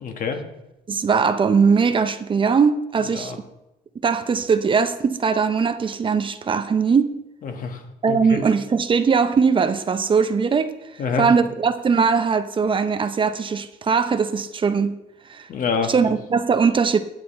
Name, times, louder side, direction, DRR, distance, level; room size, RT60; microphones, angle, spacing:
voice 1, 0.0-0.4 3.1-3.4 7.4-7.8 8.1-8.4 11.0-11.2 15.5-16.1, left 5 dB, 55° left, 1.4 m, -26 dB
voice 2, 0.9-3.4 4.0-7.1 8.0-10.8 11.2-14.9 15.3-15.5 15.9-17.0, right 5 dB, 30° right, 0.6 m, -20 dB
9.7 x 8.5 x 4.3 m
cardioid pair, 110°, 17 cm